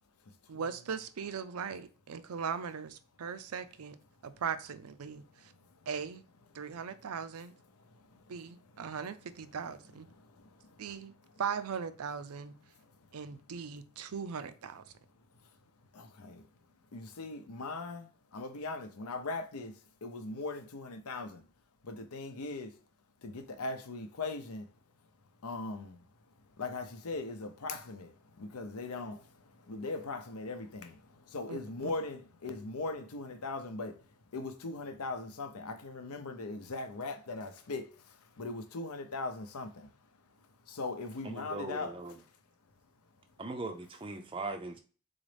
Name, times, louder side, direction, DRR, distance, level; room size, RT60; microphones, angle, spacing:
voice 1, 0.5-4.0 4.2-5.5 5.9-6.2 6.5-7.6 8.3-10.1 10.8-12.6 13.1-14.8 31.5-31.9, right 6 dB, 85° right, 0.5 m, -39 dB
voice 2, 16.0-16.4 16.9-18.1 18.3-19.7 20.0-21.4 21.8-22.7 23.2-24.7 25.4-26.0 26.6-28.1 28.4-29.2 29.7-31.0 31.3-33.9 34.3-37.8 38.4-39.9 40.7-41.9, left 3 dB, 85° left, 0.7 m, -39 dB
voice 3, 41.2-42.1 43.4-44.8, right 2 dB, 25° right, 0.4 m, -40 dB
3.9 x 3.9 x 3.3 m
head